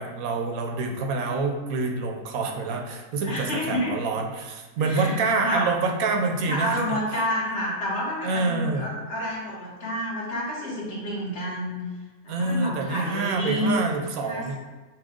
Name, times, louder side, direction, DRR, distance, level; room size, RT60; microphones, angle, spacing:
voice 1, 0.0-7.2 8.2-8.9 12.3-14.6, right 3 dB, 75° right, 3 dB, 1.1 m, -27 dB
voice 2, 3.2-3.9 4.8-5.2 5.4-5.7 6.5-11.8 12.2-13.8 14.3-14.6, equal, 50° left, -5 dB, 1.5 m, -29 dB
5.9 x 2.3 x 3.6 m, 1.2 s
omnidirectional pair, 1.5 m